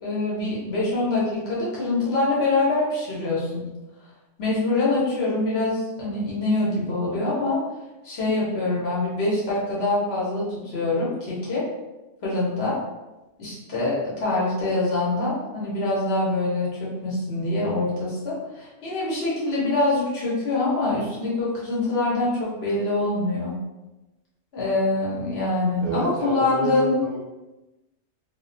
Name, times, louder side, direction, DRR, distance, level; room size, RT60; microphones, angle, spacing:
voice 1, 0.0-3.7 4.4-7.6 8.0-11.6 12.2-12.8 13.4-23.6 24.5-27.0, left 2 dB, 65° left, -6 dB, 1.1 m, -24 dB
voice 2, 25.8-27.2, right 2 dB, 60° right, -3 dB, 0.7 m, -29 dB
2.4 x 2.2 x 2.5 m, 1.1 s
omnidirectional pair, 1.2 m